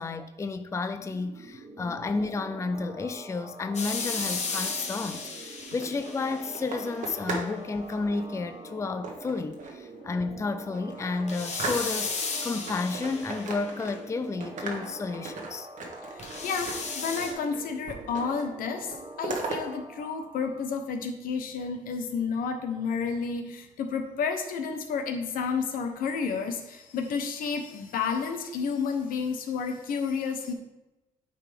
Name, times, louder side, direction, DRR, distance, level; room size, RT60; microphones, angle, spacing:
voice 1, 0.0-15.7, left 3 dB, 20° left, 0.4 m, -32 dB
sound 1, 0.8-20.7, right 2 dB, 30° right, 1.0 m, -45 dB
sound 2, 3.7-6.8 11.3-13.8 16.2-17.3, left 4 dB, 50° left, 1.3 m, -34 dB
sound 3, 5.6-7.6 7.8-8.2 9.0-9.9 10.3-10.4 10.7-12.3 12.7-14.2 14.4-17.6 17.9-18.5 18.7-19.6, right 3 dB, 60° right, 1.4 m, -38 dB
voice 2, 16.2-30.5, left 5 dB, 80° left, 0.9 m, -31 dB
8.8 x 4.7 x 3.5 m
cardioid pair, 85°, 14 cm